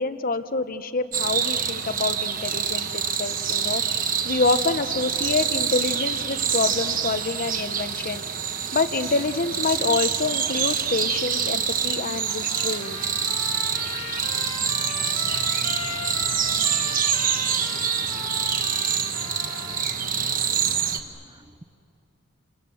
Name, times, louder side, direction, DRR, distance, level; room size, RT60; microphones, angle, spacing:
voice 1, 0.0-3.8 4.2-8.2 8.7-13.0, left 3 dB, 40° left, 11 dB, 0.9 m, -27 dB
sound 1, 1.1-21.0, right 7 dB, 40° right, 1.2 m, -26 dB
Trumpet, 12.3-19.9, left 5 dB, 70° left, 1.6 m, -37 dB
voice 2, 18.0-18.3 21.3-21.6, right 1 dB, 20° right, 14 dB, 0.6 m, -52 dB
29.5 x 27.0 x 7.0 m, 2.6 s
head